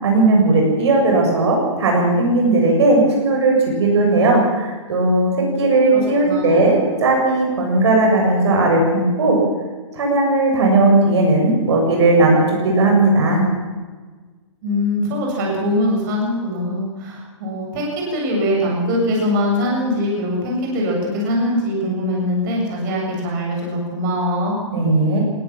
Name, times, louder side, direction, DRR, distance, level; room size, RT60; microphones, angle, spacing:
voice 1, 0.0-5.3 5.6-9.4 9.9-13.4 24.7-25.2, right 2 dB, 65° right, 0 dB, 7.6 m, -16 dB
voice 2, 5.9-6.7 14.6-24.6, left 1 dB, 40° right, -1 dB, 7.5 m, -22 dB
20.0 x 17.5 x 7.5 m, 1.4 s
hypercardioid pair, 150°, 16 cm